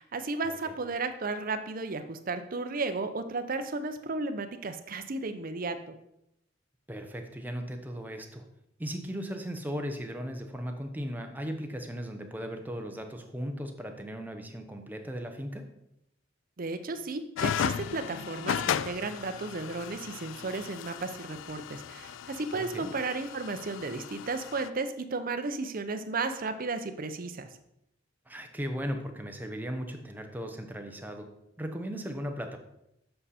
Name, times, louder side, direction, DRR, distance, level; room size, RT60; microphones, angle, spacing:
voice 1, 0.0-5.9 16.6-27.5, right 3 dB, 45° right, 8 dB, 0.6 m, -34 dB
voice 2, 6.9-8.4 8.8-15.6 22.5-22.9 28.3-31.3 31.6-32.6, equal, 10° right, 4 dB, 0.8 m, -37 dB
sound 1, 17.4-24.7, left 8 dB, 75° left, 0.3 m, -35 dB
7.7 x 5.5 x 4.2 m, 0.81 s
head